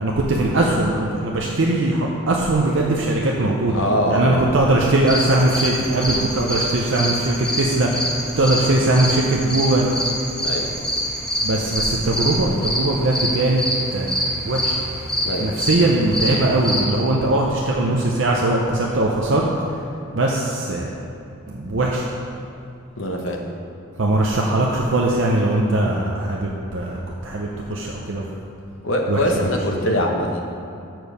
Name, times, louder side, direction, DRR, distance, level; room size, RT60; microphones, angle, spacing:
voice 1, 0.0-3.8 4.1-8.1 8.4-9.9 11.4-13.6 13.9-14.8 15.4-19.5 20.1-20.9 21.5-22.1 24.0-28.2 29.1-29.5, right 2 dB, 60° right, -2 dB, 0.6 m, -20 dB
voice 2, 3.7-4.6 10.4-10.7 15.2-15.5 23.0-23.4 28.8-30.4, equal, 65° left, 1 dB, 0.9 m, -22 dB
sound 1, 5.0-16.8, equal, 5° left, 1.0 m, -25 dB
7.0 x 4.5 x 6.5 m, 2.5 s
head